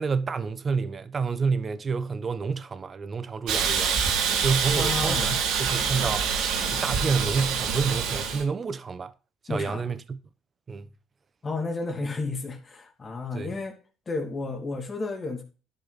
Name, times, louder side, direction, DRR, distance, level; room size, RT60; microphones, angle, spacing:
voice 1, 0.0-4.0 4.4-6.4 6.7-9.1 9.5-10.2 10.7-10.9 13.3-13.5, right 5 dB, 30° right, 1.1 m, -29 dB
Hiss, 3.5-8.4, right 6 dB, 75° right, 3.0 m, -26 dB
voice 2, 4.7-5.3 9.5-9.8 11.4-13.8 14.1-15.4, left 3 dB, 30° left, 2.6 m, -32 dB
11.5 x 6.6 x 4.2 m
cardioid pair, 105°, 0 cm